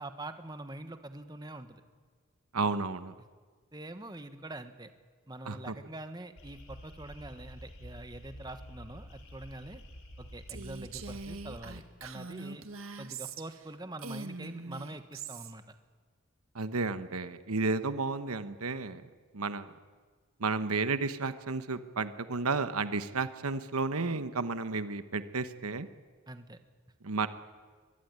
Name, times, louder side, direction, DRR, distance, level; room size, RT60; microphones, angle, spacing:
voice 1, 0.0-1.8 3.7-4.9 5.3-9.8 10.2-12.6 13.0-15.7 26.3-26.6, right 2 dB, 20° right, 9 dB, 1.3 m, -44 dB
voice 2, 2.5-3.1 5.5-5.7 16.5-19.0 19.3-19.7 20.4-25.9 27.0-27.3, right 4 dB, 90° right, 12 dB, 1.2 m, -32 dB
sound 1, 6.4-11.8, equal, 80° left, 5.0 m, -49 dB
Female speech woman speaking, 10.5-13.7 14.0-15.5, right 4 dB, 70° right, 1.8 m, -42 dB
23.0 x 22.5 x 9.7 m, 1.5 s
head